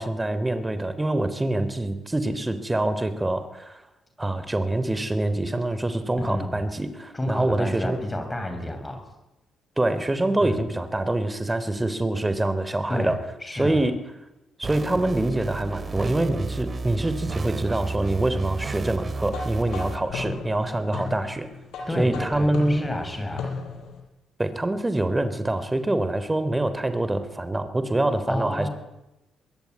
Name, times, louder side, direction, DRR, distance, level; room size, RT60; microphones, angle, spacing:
voice 1, 0.0-3.8 4.2-8.0 9.8-13.2 13.5-13.9 14.6-21.5 22.0-22.9 24.4-28.7, right 1 dB, 15° right, 11 dB, 3.5 m, -25 dB
voice 2, 6.2-6.6 7.1-9.0 10.4-10.6 12.9-13.8 21.9-23.5 28.3-28.7, left 1 dB, 15° left, 6 dB, 7.0 m, -30 dB
sound 1, 14.6-20.0, right 3 dB, 35° right, 2.4 m, -32 dB
sound 2, 19.3-24.0, left 4 dB, 75° left, 7.1 m, -35 dB
24.5 x 21.0 x 9.6 m, 0.96 s
cardioid pair, 90°, 0 cm